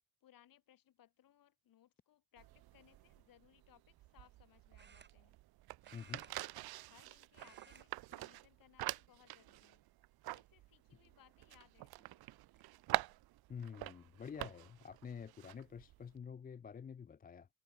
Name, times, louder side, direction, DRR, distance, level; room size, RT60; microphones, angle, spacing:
voice 1, 0.2-5.4 6.3-6.5 6.8-9.8 10.3-12.2, left 12 dB, 55° left, 4.9 m, -67 dB
sound 1, 2.4-16.2, right 17 dB, 65° right, 0.9 m, -46 dB
sound 2, 2.8-3.1 4.8-5.5 5.8-7.0 7.3-7.9 8.2-8.4 9.2-9.8 10.3-10.4 11.9-12.0 12.3-12.7, right 6 dB, 25° right, 2.4 m, -63 dB
voice 2, 5.9-6.2 13.5-17.5, left 7 dB, 20° left, 0.6 m, -48 dB
cardioid pair, 140°, 41 cm